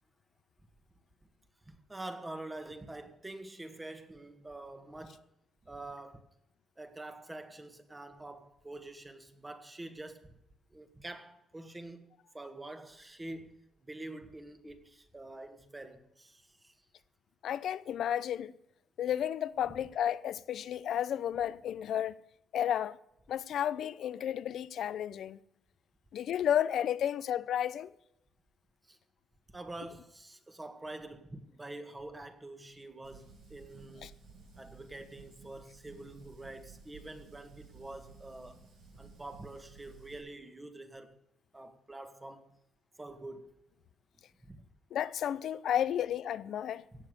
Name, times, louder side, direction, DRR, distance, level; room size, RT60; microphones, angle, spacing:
voice 1, 1.7-5.2 5.7-6.2 6.8-10.4 10.7-12.1 12.3-16.8 28.8-29.0 29.5-34.1 34.6-38.6 38.9-41.2 41.5-42.6 43.0-43.5 44.4-44.6 46.9-47.1, right 2 dB, 15° right, 1.9 m, -46 dB
voice 2, 17.4-18.5 19.0-22.2 22.5-23.0 23.3-25.4 26.1-27.9 34.0-34.1 44.9-46.8, left 10 dB, 70° left, 0.6 m, -32 dB
Fire, 33.0-40.2, right 5 dB, 80° right, 7.3 m, -55 dB
17.5 x 7.4 x 6.7 m
cardioid pair, 90°, 0 cm